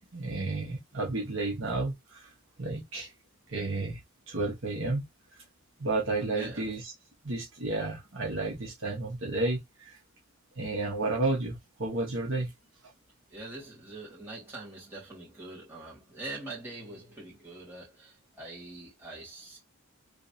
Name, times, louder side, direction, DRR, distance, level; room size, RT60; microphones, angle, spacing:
voice 1, 0.1-2.3 2.6-3.1 3.5-4.0 4.3-5.1 5.8-6.9 7.2-9.9 10.6-12.5, right 2 dB, 60° right, 1.3 m, -31 dB
voice 2, 6.3-6.7 12.4-12.5 13.3-19.6, right 2 dB, 10° right, 2.4 m, -43 dB
3.3 x 3.1 x 2.8 m
head